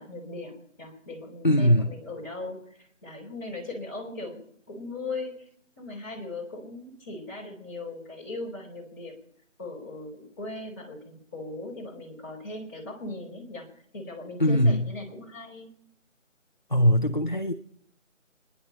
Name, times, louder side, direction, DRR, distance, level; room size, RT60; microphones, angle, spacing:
voice 1, 0.0-4.4 4.7-5.5 5.8-9.2 9.6-13.7 13.9-15.7, left 2 dB, 15° left, -7 dB, 3.0 m, -39 dB
voice 2, 1.4-1.9 14.4-14.9 16.7-17.5, equal, 40° left, 7 dB, 0.5 m, -21 dB
28.0 x 10.5 x 4.3 m, 0.69 s
figure-of-eight pair, 175°, 39 cm